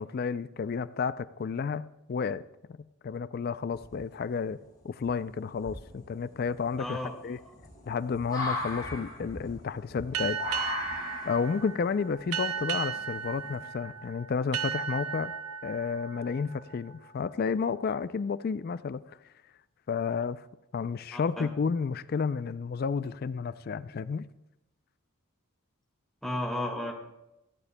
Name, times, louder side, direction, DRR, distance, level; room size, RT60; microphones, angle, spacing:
voice 1, 0.0-2.4 3.0-4.6 4.8-7.4 7.9-10.4 11.2-15.3 15.6-19.0 19.9-20.4 20.7-24.3, left 5 dB, 45° left, 0.3 m, -31 dB
sound 1, 3.7-4.3 5.0-5.1 5.6-13.6, left 2 dB, 20° left, 4.5 m, -38 dB
voice 2, 6.8-7.1 21.1-21.5 26.2-26.9, left 1 dB, ahead, 1.7 m, -33 dB
sound 2, 10.1-17.4, right 7 dB, 85° right, 0.7 m, -36 dB
19.0 x 14.5 x 2.2 m
head